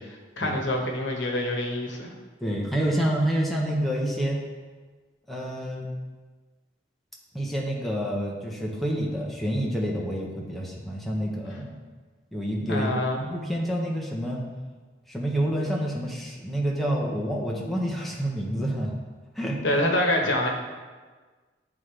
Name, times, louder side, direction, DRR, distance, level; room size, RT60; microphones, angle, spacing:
voice 1, 0.4-2.1 12.7-13.3 19.6-20.5, left 1 dB, 80° left, 1 dB, 1.0 m, -26 dB
voice 2, 2.4-4.4 5.3-5.9 7.3-11.7 12.3-12.9 13.2-14.4 15.1-18.9 19.3-19.6, equal, ahead, -3 dB, 0.9 m, -28 dB
10.5 x 3.7 x 3.3 m, 1.4 s
head